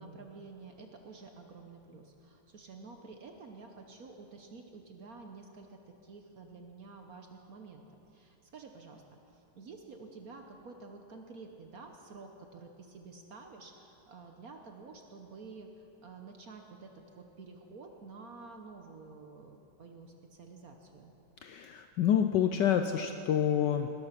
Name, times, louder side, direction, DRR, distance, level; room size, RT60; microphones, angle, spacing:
voice 1, 0.0-7.8 8.1-9.0 9.3-15.7 16.0-21.1, right 4 dB, 55° right, 4 dB, 1.1 m, -50 dB
voice 2, 21.4-23.9, left 9 dB, 75° left, 7 dB, 1.0 m, -28 dB
19.0 x 11.5 x 5.8 m, 2.9 s
omnidirectional pair, 2.3 m